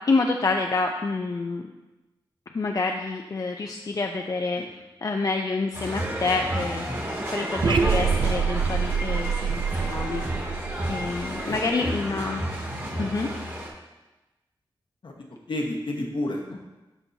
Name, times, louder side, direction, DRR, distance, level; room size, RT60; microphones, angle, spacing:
voice 1, 0.1-1.6 2.5-4.6 5.0-6.9 7.3-10.5 10.9-12.4 13.0-13.3, left 3 dB, 45° left, 3 dB, 0.5 m, -27 dB
sound 1, 5.7-13.7, right 1 dB, 30° right, 1.9 m, -31 dB
sound 2, 7.6-11.7, right 6 dB, 65° right, 0.5 m, -26 dB
voice 2, 11.4-11.9 15.0-15.2 15.5-16.7, left 1 dB, 65° left, 1 dB, 1.2 m, -31 dB
12.5 x 4.4 x 2.7 m, 1.1 s
wide cardioid pair, 75°, 9 cm